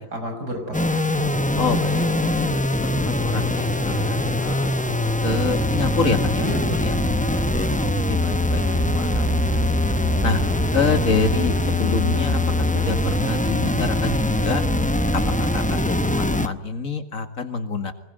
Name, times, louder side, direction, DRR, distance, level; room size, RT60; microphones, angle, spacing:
voice 1, 0.0-1.6 1.9-2.5 3.8-4.1 6.4-7.4, right 1 dB, 70° right, 5 dB, 6.5 m, -34 dB
sound 1, 0.7-16.5, left 1 dB, 10° left, 0.4 m, -22 dB
voice 2, 1.5-2.0 2.3-2.5 2.8-4.7 5.2-8.6 9.0-9.4 10.2-10.4 10.7-14.6 15.1-17.9, left 4 dB, 50° left, 8 dB, 2.5 m, -27 dB
sound 2, 8.2-15.6, right 1 dB, 15° right, 2.7 m, -37 dB
24.5 x 21.0 x 9.3 m, 0.75 s
omnidirectional pair, 1.8 m